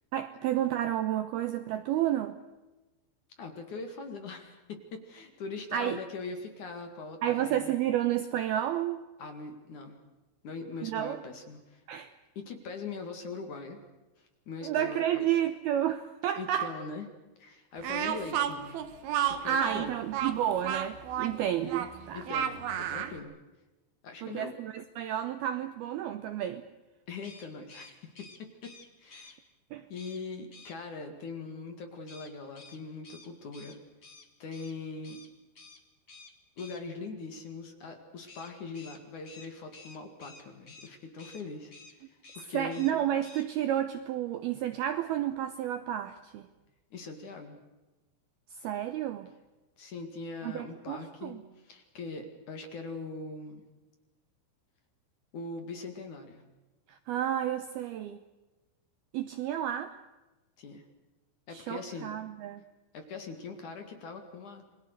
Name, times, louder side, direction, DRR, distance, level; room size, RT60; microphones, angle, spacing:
voice 1, 0.1-2.4 5.7-6.0 7.2-9.0 10.8-11.2 11.9-12.1 14.6-16.7 19.4-22.3 24.2-26.6 29.7-29.8 42.5-46.5 48.6-49.3 50.4-51.4 56.9-58.2 59.1-60.0 61.5-62.6, right 11 dB, 90° right, 10 dB, 2.2 m, -31 dB
voice 2, 3.4-7.7 9.2-10.0 10.4-11.8 12.4-13.8 14.2-15.3 16.4-17.1 17.4-18.8 19.3-19.9 22.1-23.4 24.0-24.5 27.1-28.7 29.0-29.4 29.9-33.8 34.4-35.2 36.6-42.9 46.9-47.6 49.8-53.6 55.3-56.4 60.6-60.8 61.5-62.1 62.9-64.6, left 4 dB, 50° left, 5 dB, 2.8 m, -41 dB
Speech, 17.8-23.2, right 9 dB, 65° right, 2.9 m, -32 dB
sound 1, 27.2-29.4 29.9-30.2 30.5-30.8 32.1-34.7 35.0-35.3 35.5-35.8 36.1-36.8 38.3-40.9 41.2-41.4 41.7-41.9 42.2-42.9 43.2-43.5, left 3 dB, 70° left, 0.7 m, -52 dB
29.0 x 22.0 x 6.7 m, 1.1 s
omnidirectional pair, 5.7 m